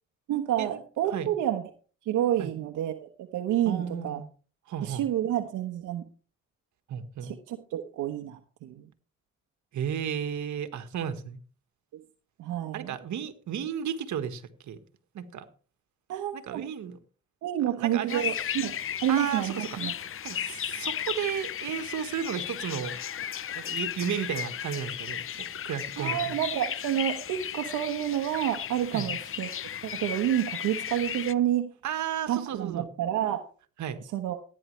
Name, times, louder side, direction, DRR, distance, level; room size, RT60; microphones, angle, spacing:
voice 1, 0.3-1.6 2.0-4.2 4.8-6.0 7.2-8.9 11.9-12.0 12.4-12.9 16.1-16.6 17.4-19.9 26.0-29.5 29.8-31.7 32.3-33.4 34.1-34.4, right 11 dB, 85° right, 1.2 m, -29 dB
voice 2, 3.7-4.3 4.7-5.0 6.9-7.3 9.7-11.4 12.7-14.8 15.1-15.5 16.3-17.0 17.8-18.3 19.1-19.8 20.2-23.0 23.5-26.4 28.9-29.1 31.8-32.9 33.8-34.0, right 8 dB, 70° right, 1.7 m, -33 dB
sound 1, 18.1-31.3, left 9 dB, 45° left, 0.7 m, -35 dB
16.5 x 9.9 x 3.3 m
cardioid pair, 90°, 30 cm